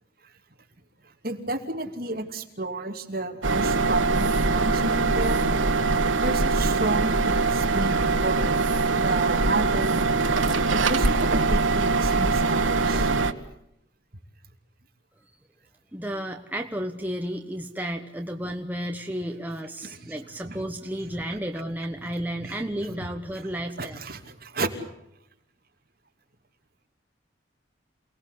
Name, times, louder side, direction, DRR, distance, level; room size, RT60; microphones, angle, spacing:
voice 1, 1.2-5.4 6.2-8.5 9.0-13.1 19.8-20.1 20.4-20.6 21.0-21.4 22.0-22.1 22.4-22.6 23.8-24.7, right 2 dB, 50° right, 3 dB, 3.0 m, -32 dB
sound 1, 3.4-13.3, right 3 dB, 90° right, 1.5 m, -23 dB
voice 2, 15.9-24.0, equal, 10° right, 3 dB, 1.2 m, -32 dB
28.5 x 19.0 x 8.4 m, 0.79 s
head